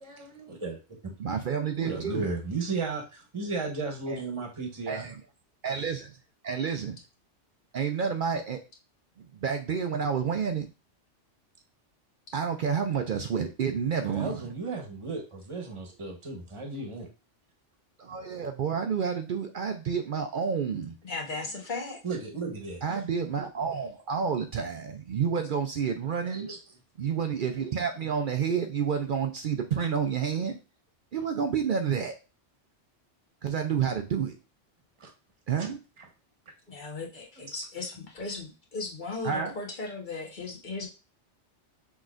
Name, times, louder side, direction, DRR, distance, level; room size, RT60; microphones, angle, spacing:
voice 1, 0.0-0.8 1.8-5.1 14.0-17.1 22.0-22.8 26.2-26.6 35.0-35.1 35.6-35.7 36.0-36.1, right 3 dB, 25° right, 2 dB, 1.1 m, -35 dB
voice 2, 1.2-2.3 4.1-4.2 4.9-5.2 5.6-6.2 6.4-7.0 7.7-8.6 9.2-10.7 12.3-14.4 18.0-21.0 22.8-26.5 27.0-30.6 31.1-32.1 33.4-34.4 35.5-35.8 39.2-39.5, right 6 dB, 60° right, 6 dB, 0.5 m, -29 dB
voice 3, 21.0-22.0 36.8-37.1 37.5-40.9, left 3 dB, 40° left, -2 dB, 1.3 m, -36 dB
6.1 x 3.1 x 2.5 m, 0.30 s
omnidirectional pair, 1.3 m